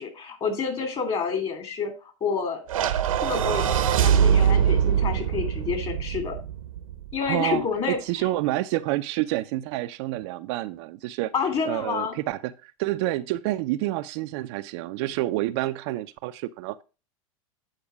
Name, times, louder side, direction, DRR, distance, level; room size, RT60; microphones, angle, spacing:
voice 1, 0.0-1.9 2.2-2.6 3.2-6.4 7.1-8.0 11.3-12.1, left 5 dB, 35° left, 5 dB, 2.8 m, -28 dB
sound 1, 2.7-7.1, right 8 dB, 80° right, 0.9 m, -23 dB
voice 2, 7.2-11.3 11.7-16.8, right 16 dB, 55° right, 10 dB, 0.5 m, -28 dB
8.8 x 4.9 x 4.8 m, 0.32 s
hypercardioid pair, 100°, 17 cm